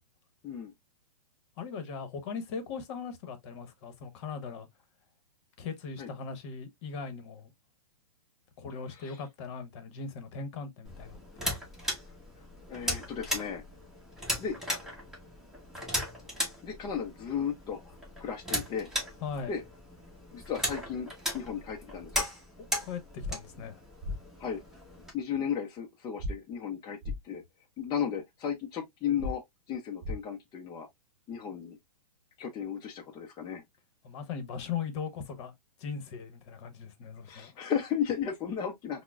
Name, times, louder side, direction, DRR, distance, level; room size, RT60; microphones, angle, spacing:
voice 1, 1.6-4.7 5.6-7.5 8.6-11.2 19.2-19.5 22.6-23.8 34.0-35.5 35.8-37.6, left 6 dB, 45° left, 1.0 m, -39 dB
voice 2, 8.9-9.2 12.7-13.6 14.4-14.6 16.6-18.9 19.5-19.6 20.3-22.3 24.4-24.6 25.1-27.0 27.2-27.4 27.8-29.4 29.7-30.9 31.3-31.8 32.4-33.6 37.2-39.0, left 8 dB, 20° left, 0.6 m, -35 dB
sound 1, 10.8-25.1, equal, ahead, 1.1 m, -37 dB
sound 2, 23.2-23.3 24.0-24.2 26.2-26.3 27.0-27.2 29.2-29.3 30.0-30.2, left 1 dB, 20° right, 0.9 m, -33 dB
5.7 x 2.1 x 2.3 m
hypercardioid pair, 135°, 20 cm